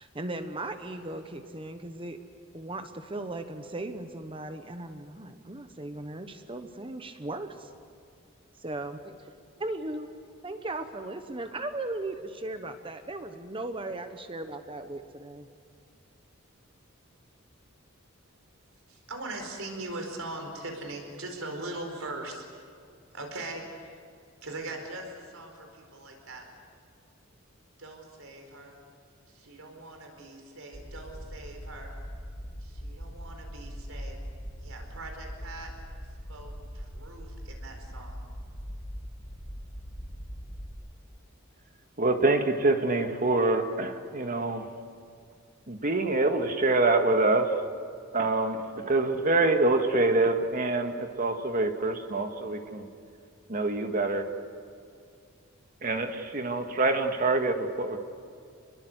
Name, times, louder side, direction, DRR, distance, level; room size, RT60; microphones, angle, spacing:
voice 1, 0.0-2.2 2.5-7.7 8.6-9.1 9.6-10.1 10.4-15.5, right 2 dB, 25° right, 8 dB, 1.1 m, -37 dB
voice 2, 18.9-22.4 23.1-24.0 24.4-26.5 27.8-28.8 29.3-31.9 32.6-34.2 34.6-35.7 36.3-38.2, right 2 dB, 75° right, 3 dB, 4.6 m, -41 dB
sound 1, 30.7-40.7, equal, 40° left, 4.1 m, -41 dB
voice 3, 42.0-44.6 45.7-47.5 48.1-52.9 53.5-54.2 55.8-58.0, right 2 dB, 40° right, 5 dB, 2.0 m, -25 dB
28.5 x 21.5 x 8.1 m, 2.3 s
head